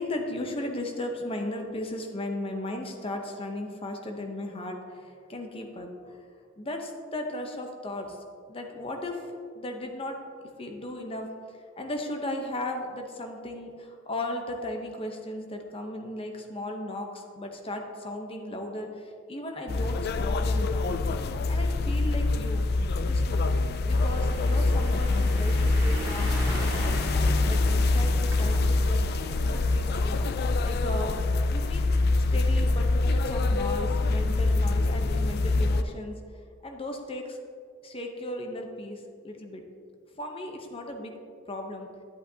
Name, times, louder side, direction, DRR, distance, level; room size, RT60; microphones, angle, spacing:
voice 1, 0.0-6.2 6.6-8.2 8.5-10.2 10.6-21.0 21.5-22.6 23.0-23.4 23.8-29.0 29.4-30.3 30.6-31.9 32.3-36.2 36.6-37.4 37.8-39.6 40.2-41.1 41.5-41.9, left 1 dB, 30° left, 3 dB, 0.8 m, -36 dB
sound 1, 19.7-35.8, left 2 dB, 50° left, 0.3 m, -25 dB
sound 2, 23.9-30.5, right 1 dB, 75° right, 1.7 m, -39 dB
10.5 x 8.1 x 2.8 m, 2.2 s
head